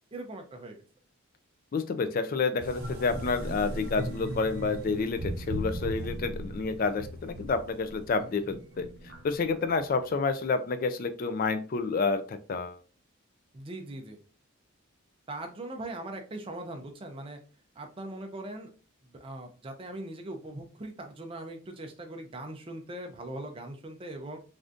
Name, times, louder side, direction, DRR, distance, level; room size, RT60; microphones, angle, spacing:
voice 1, 0.1-0.8 13.5-14.2 15.3-17.4 17.8-18.7 19.2-24.4, right 1 dB, 25° right, 4 dB, 0.4 m, -40 dB
voice 2, 1.7-8.9 9.2-12.8, left 4 dB, 40° left, 10 dB, 0.3 m, -29 dB
sound 1, 2.6-10.1, right 1 dB, 55° right, 0.8 m, -38 dB
3.4 x 2.5 x 2.5 m, 0.37 s
head